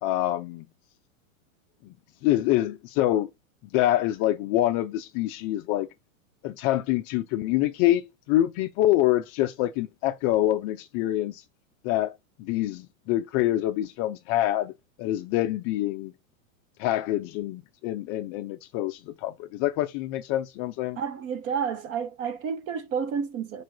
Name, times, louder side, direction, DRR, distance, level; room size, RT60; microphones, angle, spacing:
voice 1, 0.0-0.7 1.9-2.0 2.2-3.3 3.7-5.9 6.4-8.0 8.3-11.4 11.8-14.7 15.0-16.1 16.8-21.0, left 14 dB, 35° left, 0.4 m, -26 dB
voice 2, 21.0-23.6, right 6 dB, 35° right, 0.7 m, -30 dB
4.6 x 2.5 x 4.6 m
supercardioid pair, 130°, 42 cm